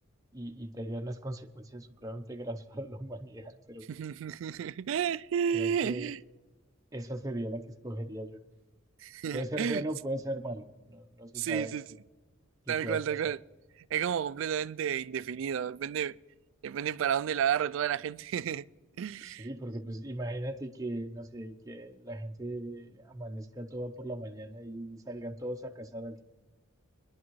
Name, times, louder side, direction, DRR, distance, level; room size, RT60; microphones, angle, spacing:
voice 1, 0.3-3.8 5.5-6.1 6.9-8.4 9.3-11.7 12.7-13.3 19.2-26.2, right 1 dB, 15° right, 0.7 m, -38 dB
voice 2, 3.9-6.2 9.0-9.8 11.3-11.8 12.7-13.4 13.9-16.2 16.6-18.7 19.0-19.5, right 8 dB, 65° right, 0.3 m, -31 dB
22.0 x 11.0 x 3.1 m
head